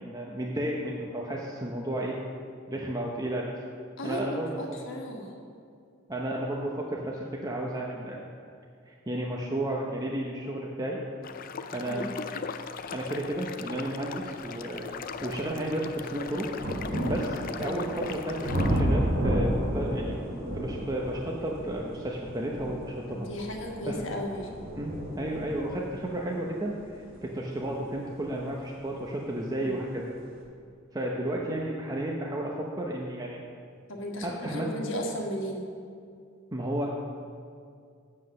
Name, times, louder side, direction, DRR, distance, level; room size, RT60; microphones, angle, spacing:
voice 1, 0.0-2.2 2.7-3.5 4.0-4.8 6.1-8.3 8.9-11.0 11.7-12.1 12.9-14.9 15.2-16.5 17.0-20.2 20.5-23.3 23.9-24.0 24.7-30.1 30.9-33.4 34.2-34.7 36.5-36.9, right 1 dB, 20° right, -2 dB, 0.7 m, -32 dB
voice 2, 4.0-5.3 11.8-12.1 17.6-18.0 23.1-24.5 29.6-29.8 33.9-35.6, equal, 70° left, 1 dB, 1.4 m, -35 dB
sound 1, 11.2-18.8, left 6 dB, 45° left, 0.4 m, -39 dB
sound 2, 13.7-13.8 14.3-29.0 29.9-30.0, equal, 80° right, 2.4 m, -33 dB
7.7 x 7.7 x 6.4 m, 2.3 s
head